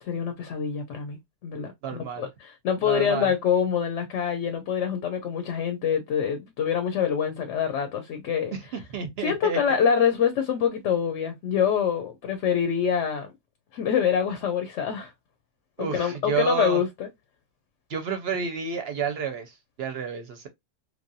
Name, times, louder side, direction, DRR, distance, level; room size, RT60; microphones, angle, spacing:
voice 1, 0.0-8.5 9.2-13.3 13.7-15.1 15.8-17.1, left 8 dB, 70° left, 0.9 m, -25 dB
voice 2, 1.8-2.3 2.8-3.3 8.9-9.6 15.8-16.8 17.9-20.5, right 6 dB, 65° right, 0.7 m, -30 dB
3.1 x 2.3 x 2.6 m
omnidirectional pair, 1.3 m